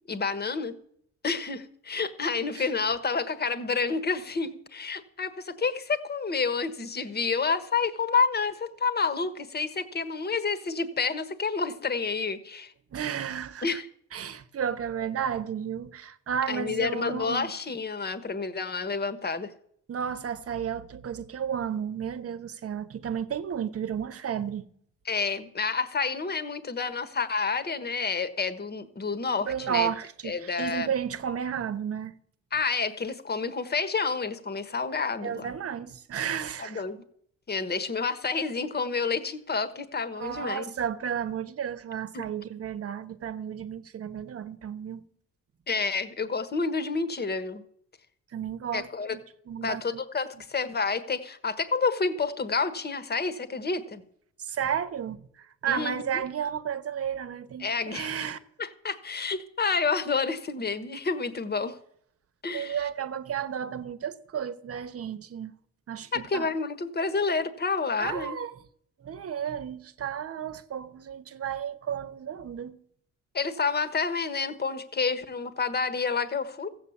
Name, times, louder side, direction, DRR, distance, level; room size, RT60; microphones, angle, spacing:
voice 1, 0.1-0.7 1.2-12.7 13.6-13.9 16.5-19.5 25.1-29.9 30.2-30.9 32.5-35.5 36.6-37.0 37.5-40.6 42.1-42.2 45.7-47.6 48.7-49.2 49.6-54.0 55.7-56.2 57.6-58.3 58.6-61.8 62.4-62.8 66.1-68.4 73.3-76.7, left 4 dB, 35° left, 1.3 m, -29 dB
voice 2, 12.9-13.8 14.1-17.5 19.9-24.6 29.4-32.1 35.2-36.8 40.2-45.0 48.3-49.2 49.5-50.0 54.4-58.4 62.5-65.6 65.9-66.5 68.0-68.6 69.0-72.8, right 8 dB, 50° right, 1.0 m, -33 dB
15.0 x 8.1 x 7.1 m
cardioid pair, 90°, 30 cm